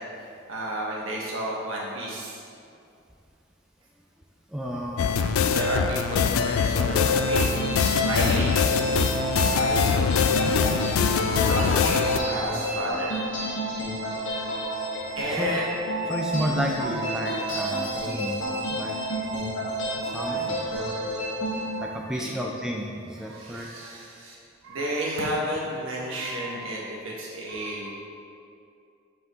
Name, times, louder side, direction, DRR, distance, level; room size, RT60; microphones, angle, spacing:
voice 1, 0.5-2.5 5.5-7.7 8.0-8.5 9.5-10.0 11.3-13.1 15.2-15.7 18.9-19.0 20.2-20.9 21.6-22.4 23.2-24.4 24.6-27.9, right 1 dB, 75° right, -4 dB, 1.3 m, -32 dB
voice 2, 4.5-5.4 8.2-8.5 15.1-15.5 16.1-19.0 20.0-20.6 21.8-23.7, equal, 5° right, -1 dB, 0.3 m, -32 dB
sound 1, 5.0-12.2, left 6 dB, 85° left, 0.3 m, -23 dB
sound 2, 6.9-21.7, right 1 dB, 60° left, 1.4 m, -30 dB
6.0 x 4.9 x 3.7 m, 2.5 s
head